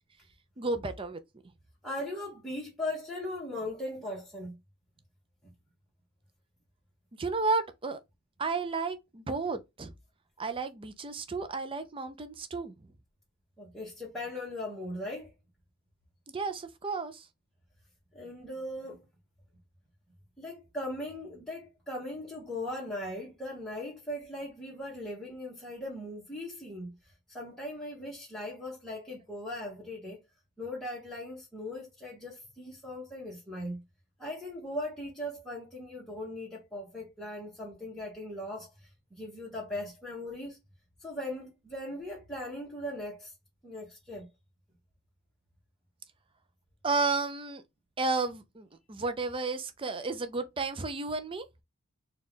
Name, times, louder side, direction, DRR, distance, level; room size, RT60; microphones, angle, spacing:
voice 1, 0.6-1.2 7.2-8.0 8.4-9.9 10.4-12.8 16.3-17.2 46.8-47.6 48.0-51.6, right 3 dB, 25° right, 0.5 m, -32 dB
voice 2, 1.8-4.6 13.6-15.3 18.1-19.1 20.4-27.0 27.3-30.2 30.6-33.8 34.2-40.6 41.0-43.3 43.6-44.3, left 1 dB, ahead, 1.2 m, -39 dB
4.2 x 2.4 x 3.6 m
head